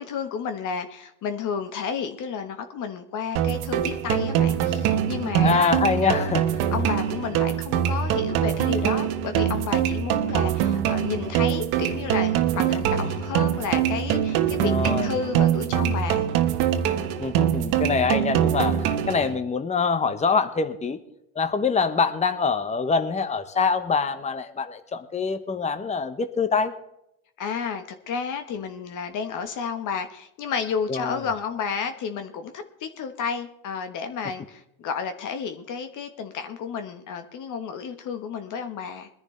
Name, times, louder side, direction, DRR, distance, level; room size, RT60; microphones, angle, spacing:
voice 1, 0.0-6.3 6.7-16.3 27.4-39.1, left 6 dB, 50° left, 7 dB, 1.4 m, -31 dB
sound 1, 3.4-19.4, right 10 dB, 70° right, 1.4 m, -24 dB
voice 2, 5.4-6.4 14.6-15.1 17.2-21.0 21.4-26.7 30.9-31.2, left 5 dB, 15° left, 10 dB, 1.0 m, -24 dB
21.5 x 10.5 x 3.3 m, 0.80 s
supercardioid pair, 90°, 39 cm